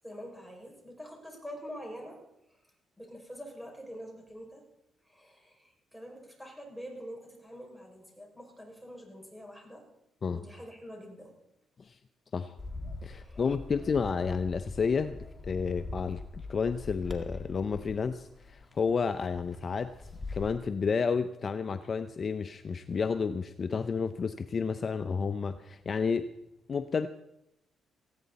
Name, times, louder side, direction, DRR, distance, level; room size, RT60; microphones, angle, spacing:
voice 1, 0.0-2.2 2.5-2.6 3.0-4.6 5.0-9.9 10.3-11.4 13.2-13.4, equal, ahead, 1 dB, 6.0 m, -45 dB
Bird, 12.6-20.6, left 3 dB, 20° left, 2.1 m, -43 dB
voice 2, 13.0-15.2 15.5-19.9 20.3-26.3 26.7-27.1, left 5 dB, 40° left, 10 dB, 0.6 m, -31 dB
19.0 x 15.5 x 4.1 m, 0.83 s
cardioid pair, 90°, 0 cm